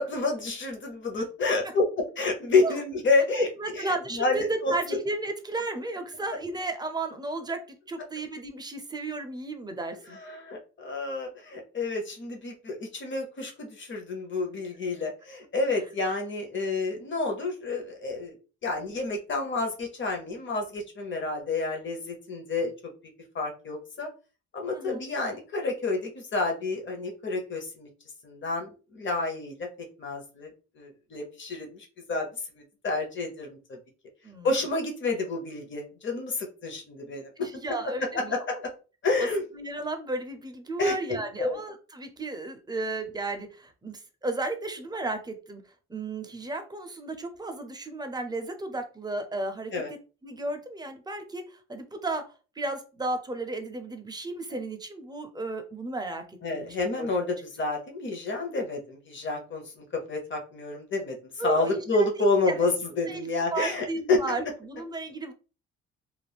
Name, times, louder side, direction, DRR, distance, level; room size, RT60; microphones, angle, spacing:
voice 1, 0.0-1.8 2.2-3.5 4.1-5.0 10.2-18.3 18.6-22.7 23.3-24.1 24.5-27.9 28.2-29.7 30.0-32.3 32.5-33.8 34.4-37.3 38.1-38.5 39.0-39.4 40.8-41.6 49.7-49.9 56.4-61.2 61.4-64.4, left 3 dB, 40° left, 2 dB, 0.9 m, -29 dB
voice 2, 3.6-10.2 24.7-25.0 34.2-34.5 37.4-38.4 39.2-39.3 39.5-45.6 45.9-49.8 50.2-52.2 52.6-56.6 57.0-57.1 61.4-62.1 62.5-62.6 63.1-65.3, right 2 dB, 15° right, 5 dB, 0.6 m, -34 dB
2.5 x 2.0 x 3.4 m, 0.35 s
cardioid pair, 90°, 30 cm